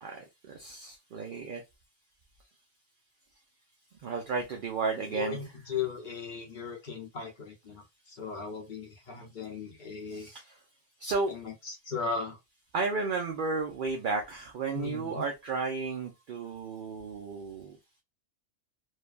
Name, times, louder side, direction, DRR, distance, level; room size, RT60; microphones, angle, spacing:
voice 1, 0.0-1.6 4.0-5.4 10.1-10.5 11.0-11.3 12.7-17.8, right 4 dB, 60° right, 0.5 m, -33 dB
voice 2, 5.0-7.8 8.1-10.3 11.3-12.4 14.7-15.2, left 5 dB, 40° left, 0.9 m, -37 dB
3.2 x 2.2 x 2.3 m
omnidirectional pair, 1.4 m